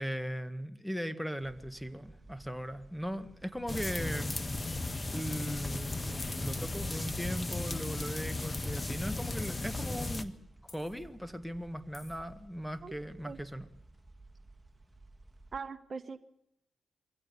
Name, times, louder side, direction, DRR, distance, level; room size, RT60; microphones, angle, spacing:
voice 1, 0.0-4.5 5.1-10.3 10.6-13.7, equal, ahead, 11 dB, 1.8 m, -38 dB
sound 1, 1.4-15.6, right 2 dB, 15° right, 2.7 m, -56 dB
sound 2, 3.7-10.2, left 2 dB, 30° left, 1.5 m, -36 dB
sound 3, 3.8-4.2 5.2-5.3 6.2-6.4 8.2-8.3 10.7-11.0 11.9-12.2, left 3 dB, 50° left, 5.6 m, -49 dB
voice 2, 15.5-16.2, right 5 dB, 50° right, 10 dB, 1.1 m, -41 dB
23.0 x 16.5 x 7.0 m, 0.77 s
supercardioid pair, 50°, 0 cm